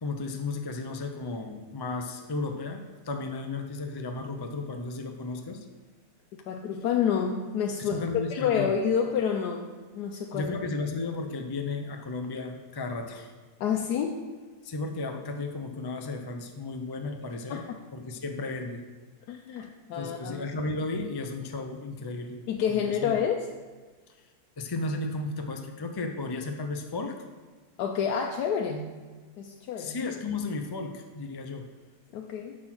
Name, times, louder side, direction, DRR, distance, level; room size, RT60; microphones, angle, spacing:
voice 1, 0.0-5.7 7.8-8.7 10.3-13.3 14.6-17.6 17.9-18.8 20.0-22.4 22.7-23.2 24.2-24.3 24.6-27.2 29.8-31.6, left 3 dB, 40° left, 4 dB, 0.3 m, -34 dB
voice 2, 6.5-8.0 8.3-10.5 13.6-14.2 17.5-17.6 19.3-20.4 22.5-23.5 27.8-28.9 29.4-30.0 32.1-32.6, left 7 dB, 85° left, 2 dB, 1.2 m, -28 dB
6.2 x 6.1 x 5.9 m, 1.4 s
omnidirectional pair, 1.7 m